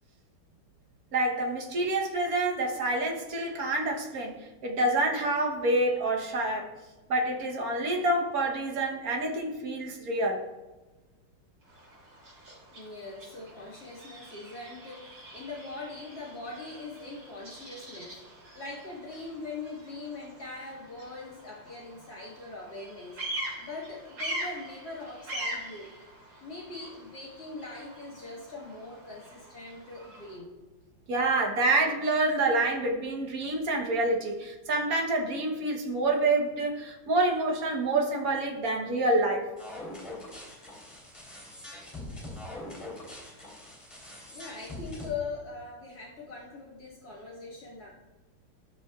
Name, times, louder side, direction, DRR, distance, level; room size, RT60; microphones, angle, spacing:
voice 1, 1.1-6.7 7.1-10.4 31.1-39.5, right 2 dB, 50° right, 1 dB, 1.3 m, -27 dB
Bird vocalization bird call bird song, 11.6-30.4, right 1 dB, 80° right, 3.8 m, -43 dB
voice 2, 12.7-18.2 18.5-25.9 26.4-30.5 44.3-47.9, left 3 dB, 50° left, -4 dB, 1.9 m, -41 dB
sound 1, 39.6-45.1, left 1 dB, 15° left, 2.8 m, -43 dB
13.0 x 6.6 x 2.3 m, 1.2 s
omnidirectional pair, 2.3 m